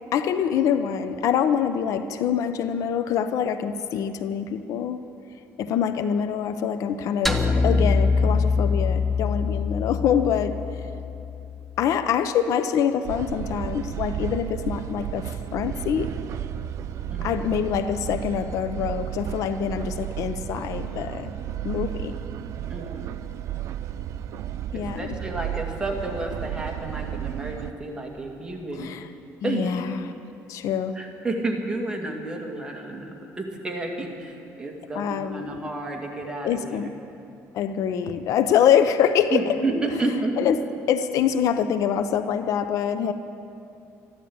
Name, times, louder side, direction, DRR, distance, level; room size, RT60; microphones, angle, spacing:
voice 1, 0.1-5.0 5.6-10.6 11.8-16.1 17.2-21.3 21.6-22.2 24.7-25.1 28.8-29.1 29.4-30.0 30.5-31.0 34.9-35.6 36.4-36.9 37.5-39.5 40.4-40.6 40.9-43.1, left 8 dB, 70° left, 10 dB, 0.7 m, -25 dB
sound 1, 7.3-11.6, left 4 dB, 5° left, 1.0 m, -23 dB
sound 2, 13.0-27.7, right 10 dB, 60° right, 0.6 m, -33 dB
voice 2, 22.7-23.1 24.7-29.0 29.4-29.7 30.9-36.9 39.3-40.5, right 2 dB, 15° right, 0 dB, 2.2 m, -31 dB
14.0 x 12.0 x 8.7 m, 2.7 s
cardioid pair, 115°, 6 cm